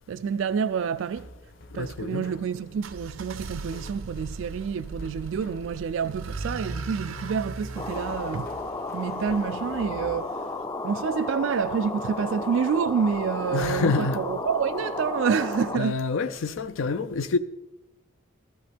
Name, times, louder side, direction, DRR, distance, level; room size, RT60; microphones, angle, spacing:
voice 1, 0.1-1.3 1.7-8.5 8.9-16.0, right 6 dB, 70° right, 0.3 m, -28 dB
sound 1, 1.0-10.2, equal, 50° left, 1.1 m, -47 dB
voice 2, 1.7-2.3 13.5-14.2 15.7-17.4, left 4 dB, 75° left, 0.5 m, -27 dB
sound 2, 2.7-9.6, right 3 dB, 85° right, 0.7 m, -39 dB
sound 3, 7.8-15.8, left 3 dB, 20° left, 0.4 m, -33 dB
14.5 x 14.0 x 3.4 m
head